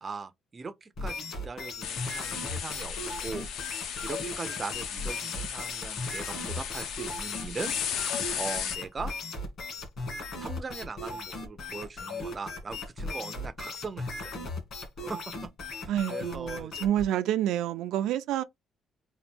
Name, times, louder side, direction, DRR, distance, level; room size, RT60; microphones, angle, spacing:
voice 1, 0.0-3.0 3.2-7.7 8.2-9.1 10.4-14.3 15.0-16.9, right 4 dB, 20° right, 0.4 m, -40 dB
sound 1, 1.0-17.1, left 2 dB, 45° left, 1.8 m, -37 dB
sound 2, 1.8-8.8, left 8 dB, 70° left, 0.7 m, -35 dB
voice 2, 15.9-18.4, right 11 dB, 85° right, 0.4 m, -28 dB
3.9 x 2.6 x 3.5 m
cardioid pair, 170°, 0 cm